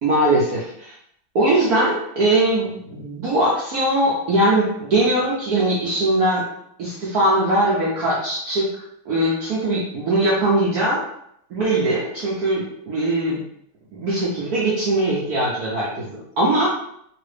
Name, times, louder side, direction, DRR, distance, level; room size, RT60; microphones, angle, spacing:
voice 1, 0.0-0.9 1.3-6.4 6.8-8.7 9.1-11.0 11.5-13.4 13.9-16.7, right 1 dB, 65° right, -6 dB, 1.0 m, -21 dB
3.0 x 2.9 x 3.2 m, 0.72 s
omnidirectional pair, 2.3 m